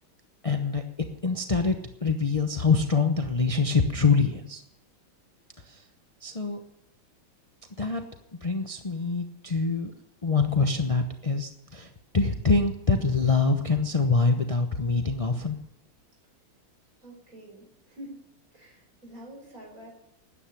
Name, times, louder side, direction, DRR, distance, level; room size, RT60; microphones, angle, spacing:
voice 1, 0.4-0.8 1.2-1.8 2.0-4.6 5.7-5.8 6.2-6.6 7.8-8.0 8.4-9.9 10.2-11.9 12.1-15.6, left 4 dB, 55° left, 5 dB, 0.3 m, -25 dB
voice 2, 17.0-18.2 18.5-19.9, equal, 40° right, -1 dB, 5.5 m, -46 dB
13.0 x 9.9 x 9.9 m, 0.81 s
omnidirectional pair, 2.3 m